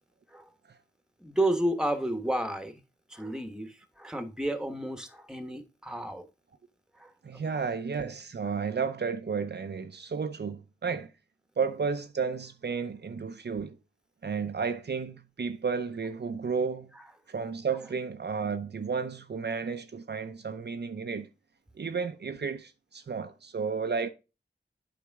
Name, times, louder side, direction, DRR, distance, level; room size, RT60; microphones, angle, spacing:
voice 1, 1.2-2.8 3.1-6.3 7.0-7.1, right 1 dB, 5° right, 1.3 m, -31 dB
voice 2, 7.2-11.1 11.6-13.8 14.2-16.9 17.3-21.3 21.7-24.1, right 5 dB, 60° right, 0.7 m, -32 dB
8.5 x 4.9 x 3.5 m
cardioid pair, 55°, 19 cm